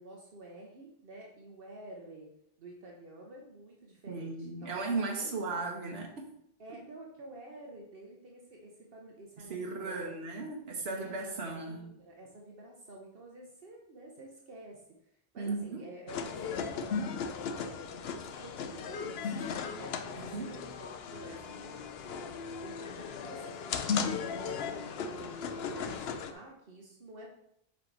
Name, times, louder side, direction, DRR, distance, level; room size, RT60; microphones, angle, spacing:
voice 1, 0.0-2.3 2.6-5.5 6.6-10.1 10.8-22.3 22.6-25.4 25.7-27.3, right 2 dB, 65° right, -2 dB, 1.2 m, -50 dB
voice 2, 4.1-6.3 9.4-11.8 15.4-15.8 20.1-20.5, right 3 dB, 85° right, 0 dB, 1.2 m, -36 dB
sound 1, 16.1-26.3, left 6 dB, 80° left, 0.8 m, -37 dB
7.2 x 4.7 x 3.9 m, 0.75 s
omnidirectional pair, 1.0 m